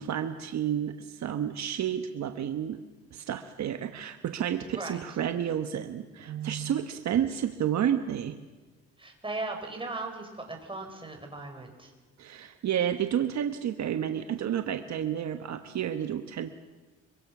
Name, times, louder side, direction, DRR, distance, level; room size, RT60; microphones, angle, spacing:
voice 1, 0.0-2.8 3.1-8.4 12.2-16.5, right 9 dB, 65° right, 7 dB, 1.2 m, -30 dB
voice 2, 9.0-11.9, right 2 dB, 15° right, 3 dB, 5.1 m, -37 dB
24.5 x 24.0 x 6.1 m, 1.3 s
cardioid pair, 90°, 30 cm